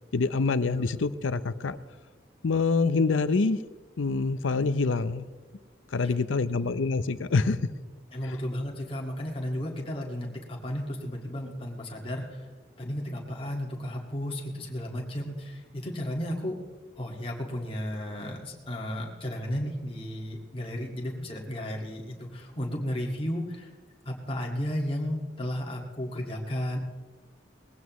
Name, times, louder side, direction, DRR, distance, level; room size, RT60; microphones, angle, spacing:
voice 1, 0.1-1.8 2.4-3.6 4.0-5.3 5.9-7.6, left 4 dB, 85° left, 14 dB, 0.6 m, -26 dB
voice 2, 8.1-12.5 12.8-16.6 17.0-23.7 24.1-26.8, equal, 30° left, -1 dB, 1.9 m, -33 dB
20.0 x 15.5 x 3.1 m, 1.4 s
head